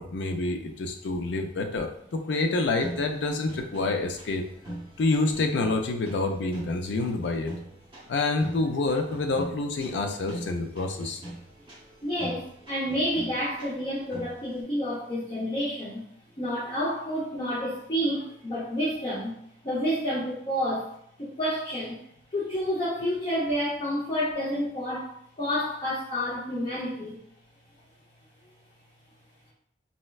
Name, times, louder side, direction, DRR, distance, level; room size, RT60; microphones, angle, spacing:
voice 1, 0.0-4.5 5.0-7.5 8.1-11.2, left 3 dB, 75° left, 4 dB, 0.4 m, -27 dB
sound 1, 2.5-14.6, right 1 dB, 25° right, 0.7 m, -42 dB
voice 2, 12.0-16.0 16.4-19.4 19.6-20.9 21.2-22.0 22.3-27.2, equal, 30° left, -8 dB, 0.6 m, -29 dB
4.3 x 2.1 x 2.3 m, 0.69 s
head